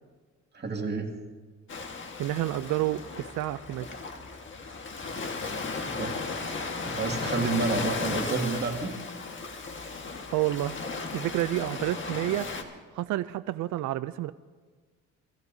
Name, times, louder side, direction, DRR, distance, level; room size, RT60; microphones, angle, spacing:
voice 1, 0.5-1.1 5.8-6.2 6.8-8.9, right 3 dB, 35° right, 1 dB, 2.1 m, -29 dB
Ocean, 1.7-12.6, left 4 dB, 40° left, 1.6 m, -35 dB
voice 2, 2.2-3.9 10.3-10.8 11.1-12.5 12.9-14.3, right 15 dB, 70° right, 12 dB, 0.5 m, -29 dB
24.5 x 15.5 x 2.7 m, 1.4 s
cardioid pair, 90°, 30 cm